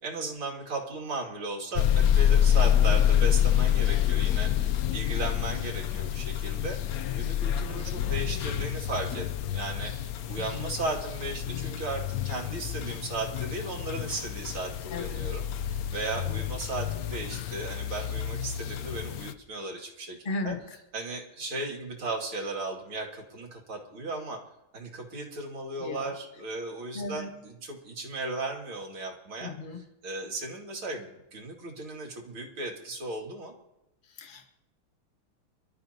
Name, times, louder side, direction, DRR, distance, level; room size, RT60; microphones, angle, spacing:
voice 1, 0.0-6.8 7.1-20.2 20.4-20.5 20.9-24.4 24.7-29.5 30.0-33.5, right 2 dB, 75° right, 0 dB, 3.2 m, -36 dB
sound 1, 1.8-19.3, left 10 dB, 70° left, 0.8 m, -27 dB
voice 2, 4.8-5.2 7.7-8.0 10.4-10.7 14.9-15.3 16.2-16.5 20.2-20.8 25.8-26.1 26.9-27.5 29.4-29.9 34.0-34.5, left 3 dB, 25° left, 4 dB, 1.4 m, -38 dB
26.5 x 13.0 x 2.8 m, 0.92 s
omnidirectional pair, 2.3 m